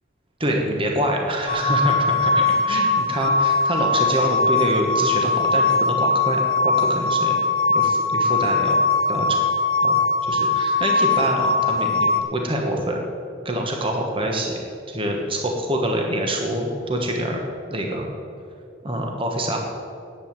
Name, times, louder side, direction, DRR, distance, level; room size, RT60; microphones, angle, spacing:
voice 1, 0.4-7.4 7.7-8.8 9.1-9.4 9.8-13.0 13.4-14.6 14.9-17.4 17.7-18.1 18.8-19.6, right 1 dB, 30° right, 1 dB, 1.2 m, -25 dB
sound 1, 1.5-12.2, left 3 dB, 55° left, 1.1 m, -20 dB
10.0 x 7.9 x 8.7 m, 2.4 s
head